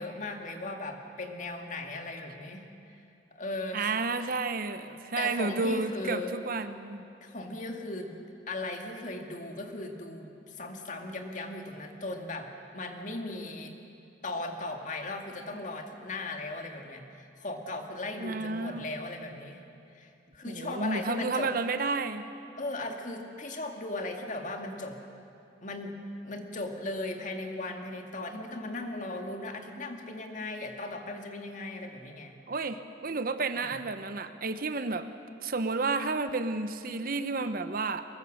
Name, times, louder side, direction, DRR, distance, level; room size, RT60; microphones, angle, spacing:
voice 1, 0.0-2.7 3.3-4.0 5.2-6.3 7.2-13.7 14.2-19.6 19.9-21.5 22.6-25.0 25.6-32.4 33.5-33.8, left 2 dB, 45° left, 4 dB, 2.0 m, -37 dB
voice 2, 3.7-7.0 18.2-18.9 20.5-22.2 32.5-35.1 35.4-38.0, right 3 dB, 50° right, 10 dB, 0.9 m, -31 dB
23.0 x 21.0 x 6.6 m, 2.6 s
head